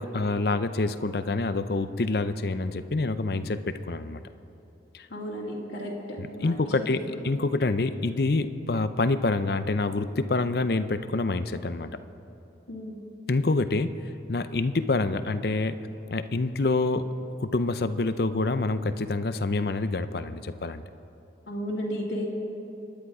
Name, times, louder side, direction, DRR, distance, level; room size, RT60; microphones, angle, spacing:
voice 1, 0.0-4.2 4.9-5.1 6.2-7.0 7.2-11.9 13.3-13.9 14.3-15.8 16.1-17.1 17.4-20.8, left 3 dB, 60° left, 11 dB, 0.6 m, -27 dB
voice 2, 5.1-6.9 12.7-13.0 21.5-22.3, equal, 85° left, -4 dB, 2.3 m, -34 dB
25.5 x 10.5 x 4.9 m, 2.8 s
head